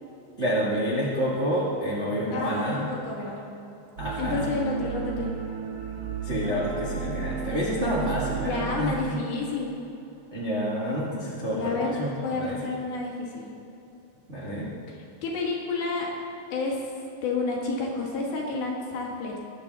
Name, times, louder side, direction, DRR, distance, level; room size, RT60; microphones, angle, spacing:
voice 1, 0.4-2.9 4.0-4.5 6.2-9.2 10.3-12.6 14.3-14.7, equal, 80° right, -7 dB, 0.6 m, -28 dB
voice 2, 2.3-3.4 4.2-5.3 8.4-9.7 11.5-11.9 12.2-13.5 15.2-16.1 16.5-16.9 17.2-19.4, left 3 dB, 65° left, -2 dB, 3.3 m, -30 dB
sound 1, 4.0-9.0, right 6 dB, 55° right, 3.2 m, -33 dB
21.5 x 7.3 x 4.1 m, 2.9 s
omnidirectional pair, 5.0 m